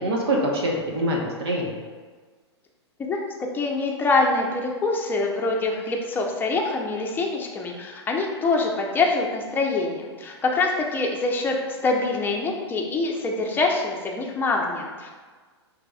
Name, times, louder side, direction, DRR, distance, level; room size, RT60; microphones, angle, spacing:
voice 1, 0.0-1.8, right 1 dB, 65° right, -1 dB, 1.0 m, -24 dB
voice 2, 3.1-11.6 11.8-15.1, left 3 dB, 15° left, 0 dB, 0.6 m, -25 dB
5.9 x 3.3 x 2.3 m, 1.4 s
figure-of-eight pair, 105°, 15 cm